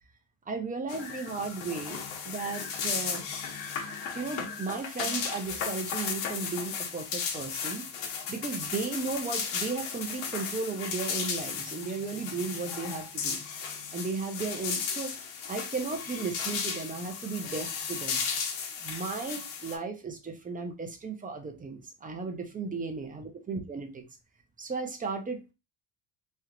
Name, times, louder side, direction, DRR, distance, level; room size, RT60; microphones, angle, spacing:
voice 1, 0.5-3.2 4.1-7.9 8.3-13.4 13.9-15.1 15.5-18.2 18.8-24.0 24.6-25.5, right 4 dB, 20° right, 4 dB, 0.8 m, -35 dB
sound 1, 0.9-19.8, left 6 dB, 90° left, 1.2 m, -35 dB
3.2 x 3.1 x 3.8 m, 0.28 s
cardioid pair, 135°, 44 cm